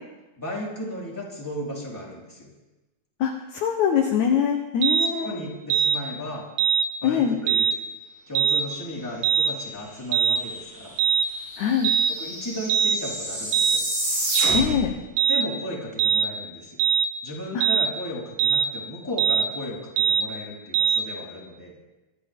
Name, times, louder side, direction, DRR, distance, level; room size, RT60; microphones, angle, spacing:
voice 1, 0.4-2.5 5.2-6.4 7.0-7.7 8.3-10.9 12.1-13.9 15.3-16.8 17.2-21.8, equal, 5° left, -5 dB, 3.3 m, -35 dB
voice 2, 3.2-5.5 7.0-7.4 11.6-11.9 14.5-14.9 17.5-17.7, left 8 dB, 70° left, 2 dB, 1.8 m, -23 dB
sound 1, 4.8-5.1 5.7-6.0 6.6-6.9 7.5-7.8 8.3-8.6 9.2-9.5 10.1-10.4 11.0-11.3 11.8-12.1 12.7-13.0 13.5-13.8 14.4-14.6 15.2-15.5 16.0-16.3 16.8-17.1 17.6-17.9 18.4-18.7 19.2-19.5 20.0-20.2 20.7-21.0, right 7 dB, 85° right, 3.0 m, -21 dB
sound 2, 10.4-10.5 10.7-14.9, right 1 dB, 50° right, 8.5 m, -30 dB
24.0 x 11.5 x 3.7 m, 1.1 s
omnidirectional pair, 4.6 m